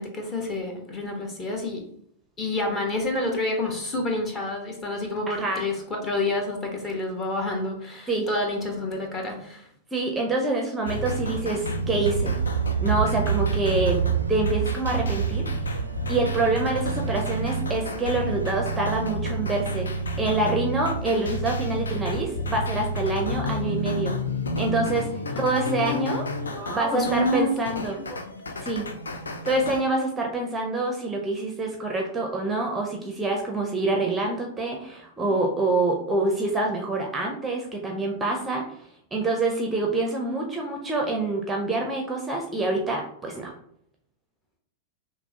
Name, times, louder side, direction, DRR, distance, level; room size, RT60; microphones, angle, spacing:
voice 1, 0.0-1.9 2.4-9.7 25.3-26.1 26.5-27.5 27.9-28.2, left 2 dB, 25° left, 1 dB, 1.0 m, -29 dB
voice 2, 5.3-5.6 8.1-8.3 9.9-12.4 12.8-14.0 14.3-15.5 16.1-19.9 20.2-24.2 24.6-25.1 25.4-26.3 26.7-28.0 28.6-28.9 29.4-38.6 39.1-43.5, right 2 dB, 10° right, 1 dB, 0.6 m, -26 dB
sound 1, 10.9-29.8, right 1 dB, 75° left, 0.5 m, -30 dB
sound 2, 12.0-19.2, right 9 dB, 80° right, 0.4 m, -30 dB
5.9 x 2.1 x 2.8 m, 0.67 s
figure-of-eight pair, 95°, 0 cm